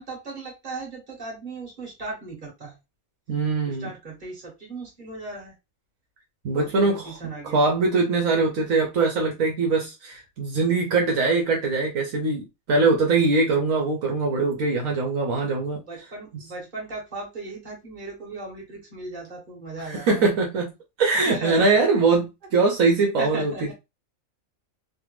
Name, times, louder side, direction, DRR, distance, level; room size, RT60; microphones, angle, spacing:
voice 1, 0.0-2.8 3.6-5.5 6.5-7.6 15.8-20.3 21.1-21.8 23.2-23.7, right 2 dB, 35° right, 1.5 m, -37 dB
voice 2, 3.3-3.9 6.4-7.2 7.5-15.8 19.9-20.7 21.0-23.7, right 3 dB, 70° right, 1.2 m, -22 dB
3.3 x 2.2 x 3.1 m
omnidirectional pair, 1.4 m